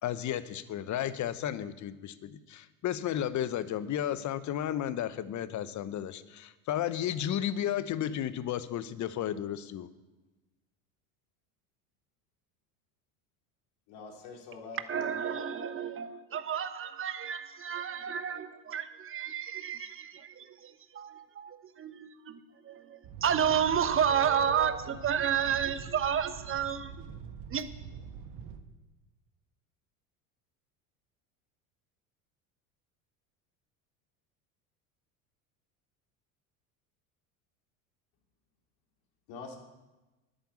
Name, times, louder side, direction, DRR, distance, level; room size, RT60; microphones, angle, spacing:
voice 1, 0.0-9.9, left 10 dB, 45° left, 14 dB, 1.0 m, -33 dB
voice 2, 13.9-15.2 39.3-39.6, left 4 dB, 65° left, 1 dB, 3.3 m, -45 dB
voice 3, 14.9-27.0 27.5-27.6, right 8 dB, 30° right, 11 dB, 1.2 m, -31 dB
sound 1, 23.0-28.6, right 6 dB, 60° right, 1.6 m, -44 dB
10.5 x 9.3 x 8.4 m, 1.1 s
hypercardioid pair, 80°, 42 cm